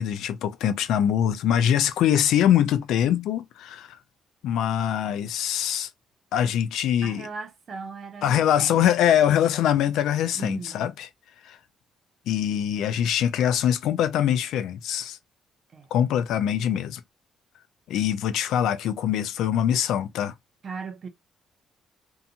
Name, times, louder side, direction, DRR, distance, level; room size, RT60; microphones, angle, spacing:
voice 1, 0.0-4.0 4.4-5.9 6.3-7.3 8.2-11.1 11.4-11.6 12.3-15.2 15.9-17.0 17.9-20.3, left 10 dB, 80° left, 0.4 m, -23 dB
voice 2, 7.0-8.9 9.2-9.3 10.3-10.9 15.7-15.9 20.6-21.1, right 5 dB, 35° right, 0.6 m, -38 dB
2.7 x 2.3 x 2.7 m
cardioid pair, 175°, 0 cm